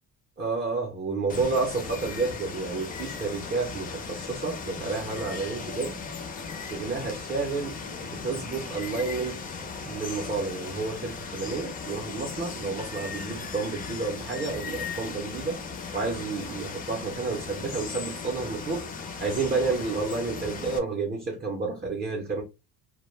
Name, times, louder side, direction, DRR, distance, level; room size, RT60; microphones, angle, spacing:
voice 1, 0.4-6.0 6.7-7.7 8.0-9.5 9.8-15.6 15.9-18.9 19.2-22.4, right 4 dB, 25° right, 0.6 m, -30 dB
Water, 1.3-20.8, left 5 dB, 25° left, 0.3 m, -37 dB
2.2 x 2.0 x 3.1 m
cardioid pair, 145°, 38 cm